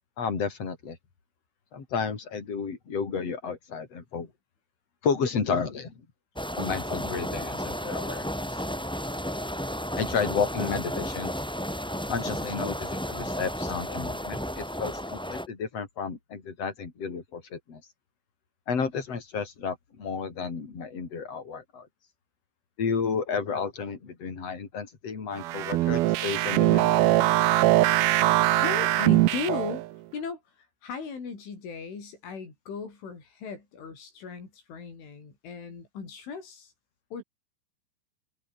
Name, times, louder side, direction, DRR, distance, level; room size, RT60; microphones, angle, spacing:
voice 1, 0.2-1.0 1.7-4.3 5.0-6.1 6.6-8.6 10.0-11.3 12.1-17.8 18.7-21.9 22.8-27.5, left 5 dB, 35° left, 4.6 m, -32 dB
sound 1, 6.4-15.5, equal, 5° left, 0.9 m, -33 dB
sound 2, 25.4-29.9, right 17 dB, 80° right, 2.2 m, -22 dB
voice 2, 28.5-29.8 30.1-36.7 37.1-37.2, left 5 dB, 80° left, 9.5 m, -37 dB
omnidirectional pair, 5.4 m